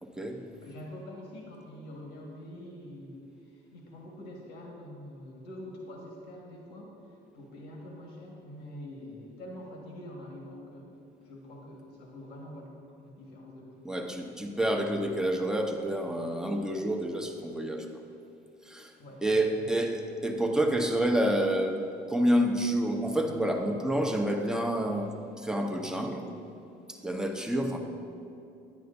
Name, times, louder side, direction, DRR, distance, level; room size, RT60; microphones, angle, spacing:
voice 1, 0.0-0.4 13.8-17.9 18.7-18.9 19.2-26.3 26.9-27.8, right 1 dB, 5° right, 2 dB, 0.7 m, -28 dB
voice 2, 0.6-13.7 19.0-19.7, left 1 dB, 80° left, -2 dB, 1.5 m, -45 dB
10.5 x 9.1 x 2.6 m, 2.6 s
cardioid pair, 110°, 17 cm